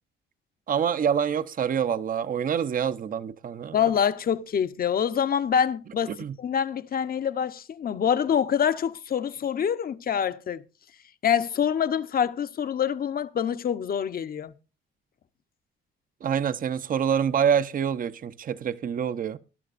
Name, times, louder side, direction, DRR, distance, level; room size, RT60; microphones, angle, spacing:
voice 1, 0.7-3.7 6.1-6.3 16.2-19.4, right 8 dB, 45° right, 0.7 m, -26 dB
voice 2, 3.7-6.1 6.4-10.6 11.2-14.5, left 8 dB, 50° left, 0.8 m, -25 dB
19.0 x 11.5 x 2.5 m
cardioid pair, 90°, 20 cm